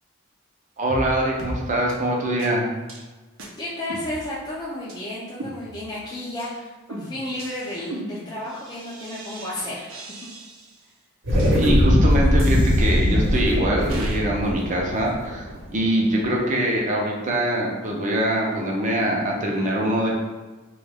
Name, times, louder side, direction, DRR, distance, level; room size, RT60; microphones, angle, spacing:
voice 1, 0.8-2.7 11.5-15.4 15.7-20.1, right 1 dB, 35° right, -1 dB, 0.6 m, -23 dB
sound 1, 0.9-1.1 1.4-1.6 1.9-2.0 2.4-2.5 2.9-3.0 3.4-3.5 3.9-4.5 4.9-5.0 5.4-6.0 6.4-6.5 6.9-9.5 9.9-10.8 11.4-11.5 12.4-13.4 13.9-14.2, right 1 dB, 75° right, 0.6 m, -37 dB
voice 2, 3.6-9.9, left 1 dB, 20° left, -8 dB, 0.4 m, -32 dB
sound 2, 11.2-15.9, equal, 55° right, 0.9 m, -20 dB
3.0 x 2.3 x 3.4 m, 1.3 s
head